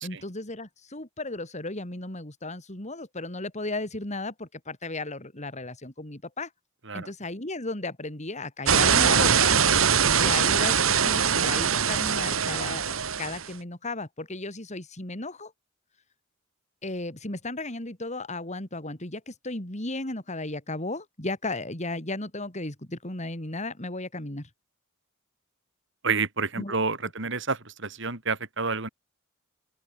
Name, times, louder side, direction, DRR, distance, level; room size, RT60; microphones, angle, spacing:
voice 1, 0.0-6.5 6.9-9.6 10.2-15.5 16.8-24.5 26.6-26.8, left 2 dB, 35° left, 3.6 m, -35 dB
sound 1, 8.7-13.5, right 7 dB, 85° right, 2.0 m, -22 dB
voice 2, 26.0-28.9, right 4 dB, 65° right, 4.7 m, -29 dB
open air
head